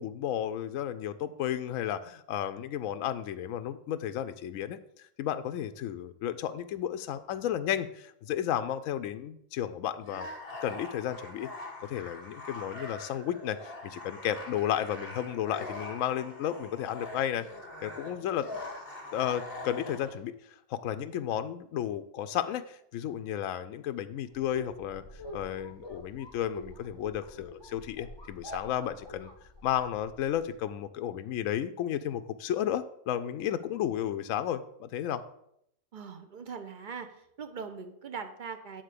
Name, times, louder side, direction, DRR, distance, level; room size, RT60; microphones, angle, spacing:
voice 1, 0.0-4.8 5.2-10.3 10.6-11.5 11.8-17.5 17.8-18.5 19.1-20.4 20.7-25.0 25.3-29.3 29.6-35.2, left 10 dB, 75° left, 10 dB, 0.9 m, -33 dB
sound 1, 10.0-20.2, left 2 dB, 45° left, 1.9 m, -43 dB
sound 2, 24.3-30.6, left 1 dB, 20° left, 1.1 m, -46 dB
voice 2, 35.9-37.1 37.4-38.8, right 5 dB, 45° right, 7 dB, 0.7 m, -41 dB
8.9 x 4.0 x 6.6 m, 0.74 s
omnidirectional pair, 1.4 m